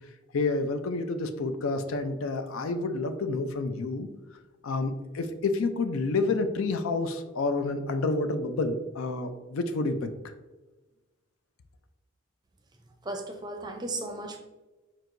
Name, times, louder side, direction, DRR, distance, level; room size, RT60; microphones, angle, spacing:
voice 1, 0.3-4.1 4.6-10.1, left 3 dB, 85° left, 9 dB, 0.5 m, -29 dB
voice 2, 13.0-14.4, right 2 dB, 20° right, 4 dB, 0.5 m, -35 dB
4.5 x 4.4 x 2.5 m, 1.1 s
head